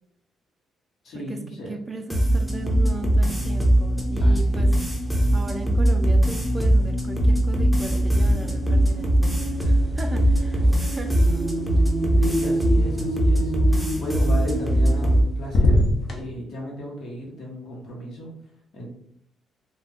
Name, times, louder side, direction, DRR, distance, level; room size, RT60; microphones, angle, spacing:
voice 1, 1.0-1.7 4.2-4.8 12.2-18.3 18.7-18.9, equal, 70° left, -2 dB, 1.0 m, -35 dB
voice 2, 1.7-4.8 5.3-11.2 13.5-14.1, right 2 dB, 25° right, 6 dB, 0.3 m, -36 dB
sound 1, 2.1-15.2, right 1 dB, ahead, 0.7 m, -20 dB
sound 2, 7.8-8.5 8.8-12.9 14.5-15.2 15.4-16.2, left 1 dB, 45° left, 0.7 m, -27 dB
2.3 x 2.2 x 3.4 m, 0.71 s
cardioid pair, 90°, 0 cm